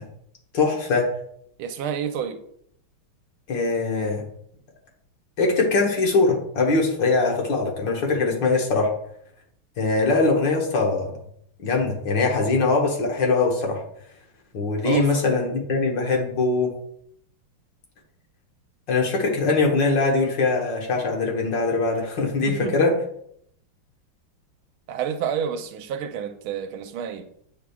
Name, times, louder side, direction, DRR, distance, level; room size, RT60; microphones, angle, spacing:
voice 1, 0.5-1.1 3.5-4.2 5.4-8.9 9.8-11.1 11.6-13.8 14.5-16.7 18.9-23.0, left 3 dB, 60° left, 1.9 m, -22 dB
voice 2, 1.6-2.4 8.1-8.3 14.8-15.1 22.4-22.9 24.9-27.3, right 8 dB, 85° right, 1.5 m, -29 dB
8.5 x 6.0 x 2.3 m
omnidirectional pair, 2.3 m